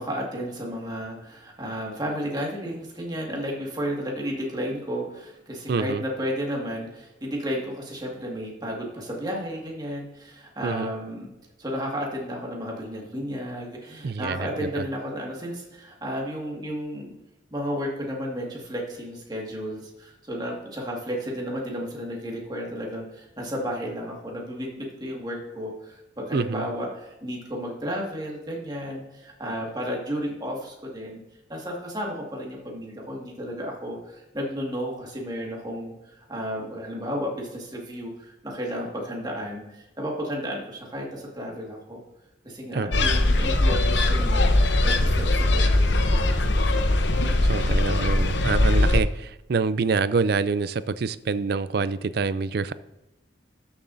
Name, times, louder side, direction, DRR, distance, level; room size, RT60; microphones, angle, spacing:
voice 1, 0.0-11.3 11.6-17.1 17.5-31.2 31.5-42.0 42.4-44.5 44.8-46.0 46.4-46.7, equal, 20° right, -1 dB, 1.9 m, -33 dB
voice 2, 5.7-6.0 10.6-10.9 14.0-14.8 26.3-26.6 42.7-43.1 47.4-52.7, right 4 dB, 55° right, 15 dB, 0.4 m, -26 dB
sound 1, 42.9-49.0, left 2 dB, 70° left, 0.8 m, -21 dB
12.5 x 7.0 x 2.6 m, 0.97 s
head